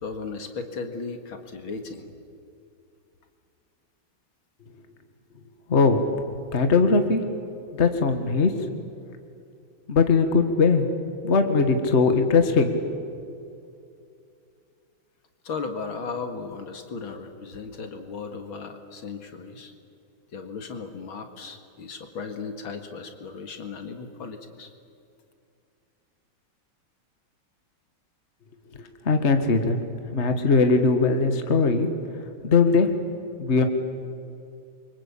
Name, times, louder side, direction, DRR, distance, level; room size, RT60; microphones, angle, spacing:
voice 1, 0.0-2.1 15.4-19.7 20.3-24.7, left 4 dB, 70° left, 6 dB, 2.7 m, -36 dB
voice 2, 5.7-6.0 6.5-7.2 7.8-8.5 9.9-10.9 11.2-13.0 29.1-29.8 30.1-31.9 32.4-32.9 33.4-33.6, left 4 dB, 35° left, 7 dB, 1.9 m, -20 dB
28.5 x 24.5 x 8.7 m, 2.5 s
omnidirectional pair, 2.4 m